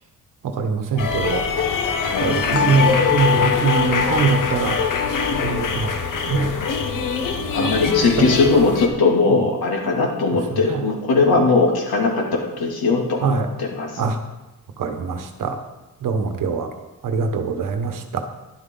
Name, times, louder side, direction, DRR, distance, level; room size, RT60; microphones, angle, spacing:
voice 1, 0.4-1.4 2.2-4.8 5.3-5.9 6.2-6.5 7.6-7.8 8.2-8.3 9.0-9.1 10.7-10.8 13.2-13.5 14.0-14.2 14.8-15.6 16.0-16.7 17.0-18.2, right 4 dB, 60° right, 6 dB, 1.3 m, -22 dB
sound 1, 1.0-8.9, left 5 dB, 55° left, 1.1 m, -23 dB
voice 2, 2.1-3.0 7.5-14.0, left 3 dB, 80° left, -1 dB, 3.0 m, -20 dB
sound 2, 2.6-8.4, left 7 dB, 40° left, 0.5 m, -27 dB
12.5 x 11.5 x 4.0 m, 1.1 s
wide cardioid pair, 155°, 36 cm